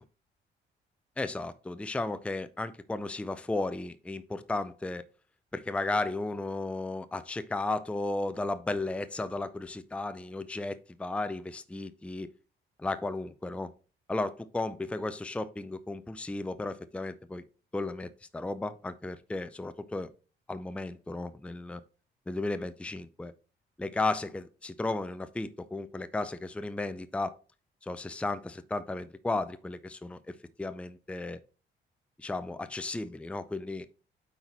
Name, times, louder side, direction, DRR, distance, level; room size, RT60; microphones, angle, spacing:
voice 1, 1.2-5.0 5.5-12.3 12.8-13.7 14.1-17.4 17.7-20.1 20.5-21.8 22.3-23.3 23.8-27.3 27.8-31.4 32.2-33.9, left 2 dB, 5° left, 0.5 m, -34 dB
8.0 x 4.4 x 4.3 m
cardioid pair, 90°, 20 cm